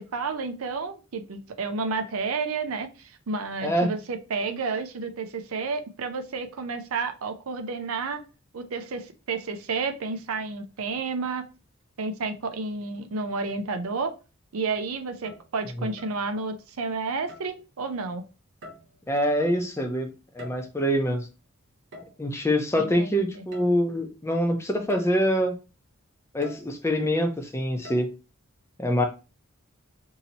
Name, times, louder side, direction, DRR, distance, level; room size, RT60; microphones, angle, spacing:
voice 1, 0.0-8.2 8.5-11.4 12.0-14.1 14.5-18.2 22.7-23.4, right 4 dB, 85° right, 7 dB, 0.6 m, -31 dB
sound 1, 15.1-15.6 16.0-16.3 17.3-17.6 18.6-19.1 20.2-20.9 21.9-22.3 23.5-23.7 24.2-24.3 24.9-25.2 26.4-26.8 27.8-28.1, left 1 dB, 60° right, 1.0 m, -45 dB
voice 2, 19.1-20.1 20.4-21.2 22.2-25.5 26.3-28.1 28.8-29.0, equal, 10° left, 4 dB, 0.5 m, -25 dB
2.7 x 2.7 x 4.1 m, 0.31 s
head